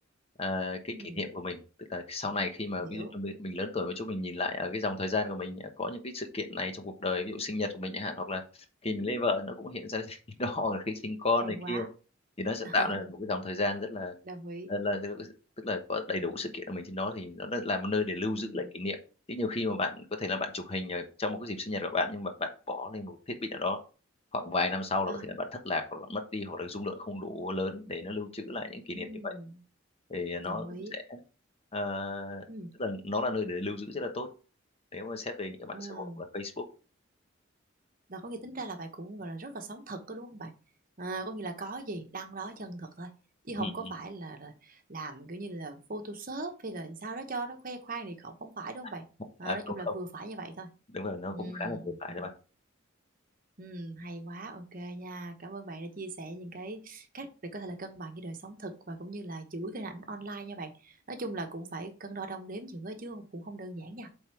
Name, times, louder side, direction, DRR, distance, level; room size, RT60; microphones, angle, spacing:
voice 1, 0.4-1.6 1.9-8.4 8.8-11.8 12.4-14.1 14.7-15.3 15.6-19.0 19.3-23.8 24.3-29.3 30.1-31.2 31.7-32.4 32.8-34.3 34.9-36.6 43.6-43.9 49.4-49.6 49.9-50.0 50.9-52.3, left 2 dB, 30° left, 6 dB, 1.0 m, -33 dB
voice 2, 0.9-1.3 2.8-3.2 11.4-11.9 12.6-13.1 14.2-14.7 18.4-18.7 25.1-25.3 28.9-29.6 30.4-30.9 32.5-32.7 35.7-36.2 38.1-40.5 41.0-43.1 43.4-49.0 49.4-50.7 51.3-52.0 53.6-64.1, right 2 dB, 45° right, 6 dB, 1.0 m, -40 dB
8.0 x 3.6 x 4.7 m, 0.35 s
head